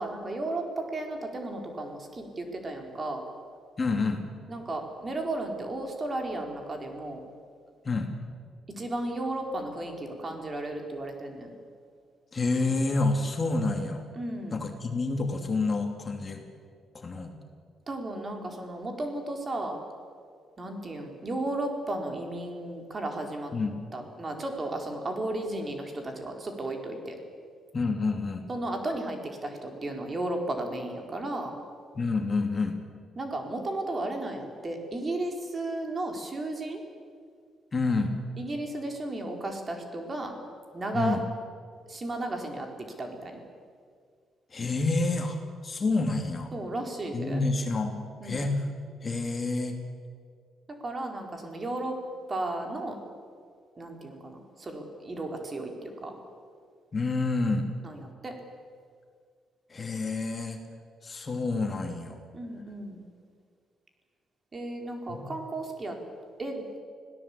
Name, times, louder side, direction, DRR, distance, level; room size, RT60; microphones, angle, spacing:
voice 1, 0.0-3.2 4.5-7.2 8.7-11.5 14.1-14.6 17.9-19.8 20.6-23.5 23.9-27.2 28.5-31.5 33.2-36.8 38.4-40.4 40.7-41.2 41.9-43.4 46.5-47.4 48.2-48.5 50.7-52.0 52.3-53.0 53.8-56.1 57.8-58.4 62.3-63.0 64.5-66.0 66.4-66.7, right 2 dB, 30° right, 3 dB, 4.2 m, -34 dB
voice 2, 3.8-4.2 7.8-8.1 12.3-14.1 14.5-16.4 16.9-17.3 23.5-23.8 27.7-28.5 31.9-32.8 37.7-38.1 40.9-41.2 44.5-45.4 45.6-46.5 47.1-47.9 48.2-48.5 49.0-49.8 56.9-57.7 59.7-60.6 61.0-62.2 65.1-65.2, left 3 dB, 35° left, 4 dB, 2.8 m, -28 dB
25.5 x 17.0 x 8.5 m, 2.1 s
cardioid pair, 90°, 0 cm